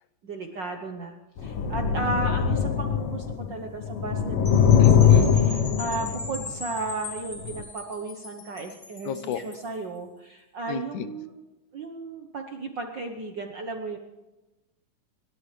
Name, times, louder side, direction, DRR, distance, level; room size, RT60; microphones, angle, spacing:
voice 1, 0.2-11.4 11.7-14.0, right 3 dB, 60° right, 3 dB, 1.2 m, -35 dB
sound 1, 1.4-3.5 3.8-6.5 7.4-7.6, left 8 dB, 60° left, 1.5 m, -21 dB
sound 2, 4.4-9.7, left 2 dB, 25° left, 6.1 m, -40 dB
voice 2, 4.8-5.4 9.1-9.4 10.7-11.1, left 9 dB, 80° left, 11 dB, 2.2 m, -32 dB
28.5 x 12.5 x 3.3 m, 1.1 s
omnidirectional pair, 3.4 m